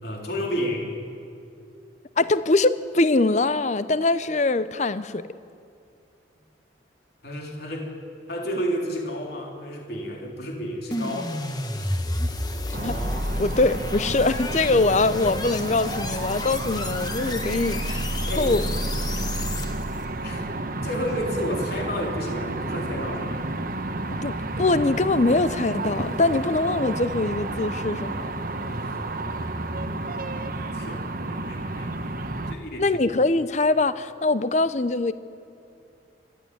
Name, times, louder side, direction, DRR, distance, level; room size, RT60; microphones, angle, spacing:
voice 1, 0.0-0.9 7.2-7.9 8.3-11.4 18.3-18.6 20.2-20.5 20.8-23.4 28.6-29.3 30.7-31.9 32.5-33.0, equal, 55° left, 1 dB, 3.5 m, -31 dB
voice 2, 2.2-5.3 12.2-12.3 12.8-13.0 13.4-18.7 24.1-28.3 32.8-35.1, left 2 dB, 35° left, 14 dB, 0.6 m, -23 dB
sound 1, 10.9-20.0, left 1 dB, 20° left, 1.3 m, -30 dB
sound 2, 12.7-32.5, right 2 dB, 45° right, 1.2 m, -31 dB
26.0 x 14.0 x 9.5 m, 2.5 s
head